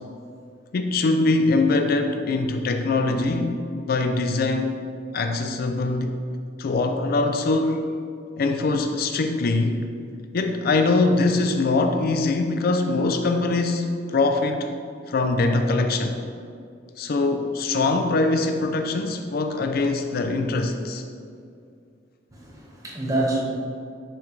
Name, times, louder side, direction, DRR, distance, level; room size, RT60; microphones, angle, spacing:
voice 1, 0.7-4.7 5.1-6.2 6.6-7.9 8.4-9.8 10.3-14.7 15.1-16.2 17.0-21.0, left 3 dB, 55° left, 6 dB, 0.4 m, -23 dB
voice 2, 22.3-23.4, right 2 dB, 20° right, -3 dB, 1.4 m, -27 dB
10.5 x 5.3 x 3.2 m, 2.4 s
head